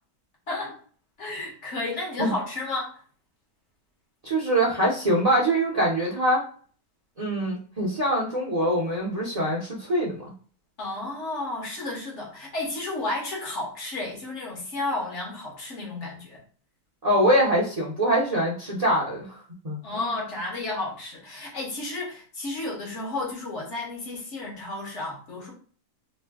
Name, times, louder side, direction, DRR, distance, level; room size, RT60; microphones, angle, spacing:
voice 1, 0.5-0.8 1.2-2.9 10.8-16.4 19.8-25.5, left 2 dB, 55° left, -2 dB, 1.2 m, -32 dB
voice 2, 4.2-6.4 7.2-10.2 17.0-19.4 19.6-20.1, right 1 dB, 35° right, -5 dB, 0.7 m, -24 dB
3.0 x 2.1 x 3.3 m, 0.43 s
omnidirectional pair, 1.6 m